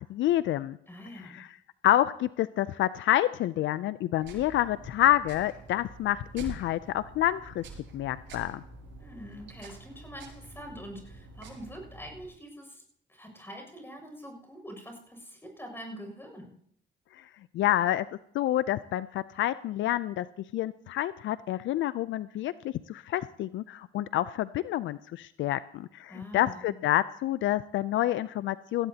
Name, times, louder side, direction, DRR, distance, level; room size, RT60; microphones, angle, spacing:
voice 1, 0.1-0.8 1.3-1.5 1.8-7.6 7.9-8.6 17.5-18.1 18.3-20.3 20.5-28.9, left 13 dB, 75° left, 15 dB, 0.4 m, -28 dB
voice 2, 0.9-1.4 9.0-12.8 13.1-16.5 26.1-26.8, equal, 10° left, 2 dB, 6.5 m, -44 dB
sound 1, 4.2-12.3, right 2 dB, 70° right, 6.5 m, -47 dB
18.0 x 16.5 x 2.8 m, 0.70 s
cardioid pair, 90°, 20 cm